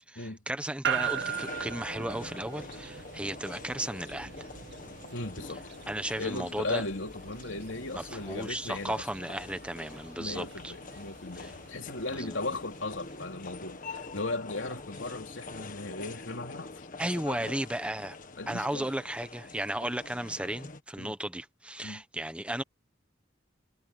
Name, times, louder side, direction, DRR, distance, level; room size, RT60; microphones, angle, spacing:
voice 1, 0.1-4.5 5.9-6.8 8.0-10.7 11.3-11.5 12.1-12.4 17.0-18.2 18.5-22.6, right 1 dB, 5° right, 1.1 m, -35 dB
sound 1, 0.8-15.1, right 8 dB, 65° right, 0.9 m, -41 dB
sound 2, 0.9-20.8, left 3 dB, 45° left, 1.6 m, -45 dB
voice 2, 5.1-5.7 6.2-9.0 10.2-17.5 18.4-18.9 21.0-21.1 21.8-22.0, left 2 dB, 85° left, 3.4 m, -37 dB
head